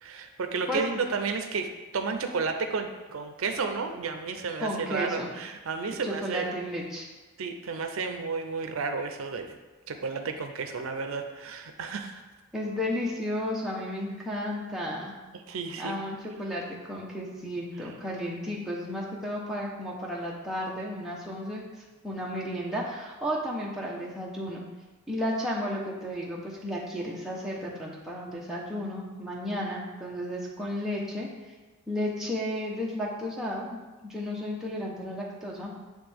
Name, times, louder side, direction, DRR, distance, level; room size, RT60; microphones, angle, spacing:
voice 1, 0.0-6.5 7.4-9.6 9.9-12.2 15.3-16.0, right 4 dB, 75° right, 6 dB, 0.5 m, -32 dB
voice 2, 4.6-5.3 6.0-7.1 12.5-15.1 15.8-21.6 22.0-24.6 25.1-31.3 31.9-35.7, equal, ahead, -5 dB, 0.8 m, -33 dB
8.8 x 3.2 x 3.5 m, 1.2 s
head